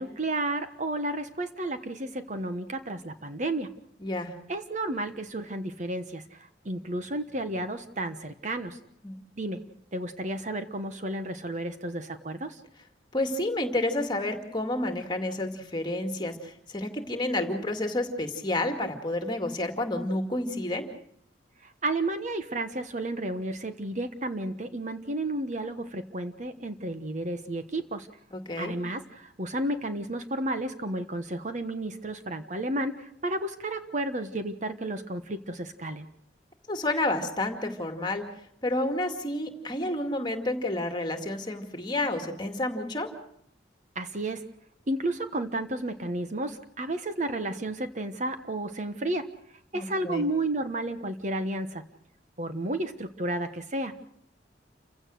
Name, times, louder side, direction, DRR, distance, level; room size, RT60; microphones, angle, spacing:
voice 1, 0.0-3.7 4.5-8.8 9.4-9.6 9.9-12.6 21.6-28.1 28.6-36.1 43.9-44.4 44.9-49.3 49.7-51.8 52.4-53.9, right 1 dB, 40° right, 9 dB, 1.2 m, -32 dB
voice 2, 4.0-4.3 9.0-9.2 9.6-9.7 13.1-20.9 28.3-28.7 36.7-38.2 38.6-43.1 49.7-50.2, left 1 dB, 25° left, 5 dB, 2.2 m, -30 dB
29.0 x 16.5 x 6.5 m, 0.72 s
head